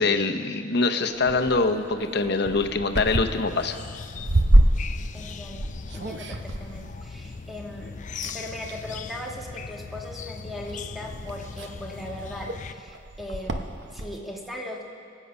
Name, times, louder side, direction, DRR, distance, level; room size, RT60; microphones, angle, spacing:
voice 1, 0.0-3.8, left 3 dB, 60° left, 6 dB, 0.8 m, -24 dB
sound 1, 1.0-7.8 8.2-8.9 9.8-10.1 10.7-10.8 11.0-14.2, right 1 dB, 65° right, 0.9 m, -27 dB
sound 2, 3.5-12.7, left 5 dB, 40° left, 0.4 m, -39 dB
voice 2, 5.1-8.0 8.2-14.8, left 1 dB, ahead, -2 dB, 1.5 m, -39 dB
23.5 x 8.4 x 5.4 m, 2.5 s
head